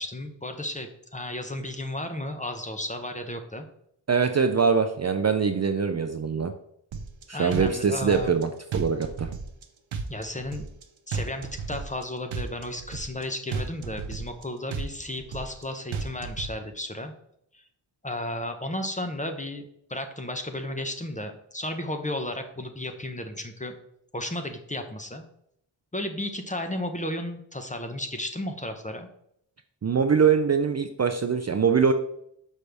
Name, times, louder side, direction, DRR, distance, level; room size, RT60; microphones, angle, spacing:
voice 1, 0.0-3.6 7.3-8.4 10.1-10.6 11.1-17.1 18.0-23.7 24.1-25.2 25.9-29.1, left 1 dB, 15° left, 6 dB, 0.7 m, -33 dB
voice 2, 4.1-6.5 7.3-9.3 29.8-31.9, right 6 dB, 35° right, 6 dB, 0.4 m, -23 dB
sound 1, 6.9-7.2 7.5-8.4 8.7-9.6 9.9-10.8 11.1-12.0 12.3-13.2 13.5-14.4 14.7-15.6 15.9-16.5, right 5 dB, 75° right, 0.8 m, -33 dB
6.3 x 5.3 x 3.4 m, 0.72 s
wide cardioid pair, 100°, 47 cm